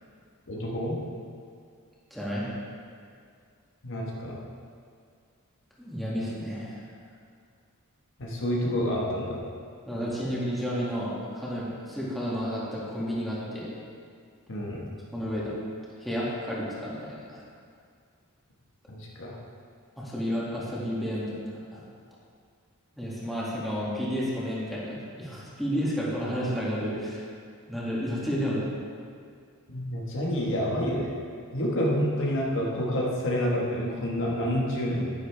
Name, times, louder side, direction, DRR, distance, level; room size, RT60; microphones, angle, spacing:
voice 1, 0.5-1.0 3.8-4.4 8.2-9.4 14.5-14.8 18.9-19.4 29.7-31.1 31.5-35.1, equal, 60° left, -3 dB, 1.3 m, -28 dB
voice 2, 2.1-2.5 5.8-6.8 9.9-13.7 15.1-15.6 16.0-17.4 20.0-21.2 21.7-21.8 23.0-27.3 27.7-28.6, equal, ahead, -8 dB, 2.1 m, -31 dB
10.0 x 10.0 x 3.4 m, 2.2 s
head